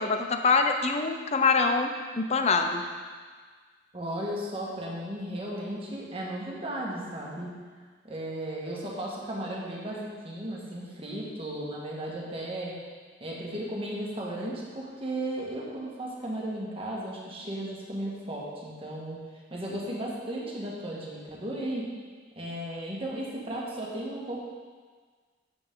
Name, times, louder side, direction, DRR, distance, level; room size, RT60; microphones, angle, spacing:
voice 1, 0.0-1.9 2.2-2.8, left 4 dB, 35° left, 6 dB, 0.6 m, -24 dB
voice 2, 3.9-7.5 8.0-12.7 13.2-19.2 19.5-21.9 22.3-24.4, right 1 dB, 30° right, -4 dB, 1.6 m, -35 dB
8.2 x 7.9 x 3.8 m, 1.5 s
head